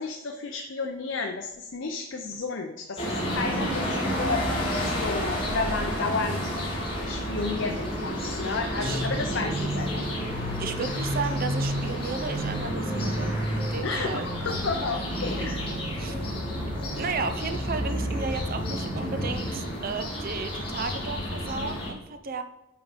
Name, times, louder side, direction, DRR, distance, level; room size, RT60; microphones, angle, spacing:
voice 1, 0.0-6.6 7.0-10.0 13.8-15.6, left 4 dB, 65° left, 3 dB, 0.7 m, -32 dB
sound 1, 3.0-21.9, equal, 25° left, 2.3 m, -31 dB
sound 2, 8.8-19.6, equal, 20° right, 2.2 m, -33 dB
voice 2, 10.6-14.3 15.9-16.2 17.0-22.4, right 4 dB, 45° right, 9 dB, 0.6 m, -34 dB
9.2 x 3.7 x 5.0 m, 0.98 s
head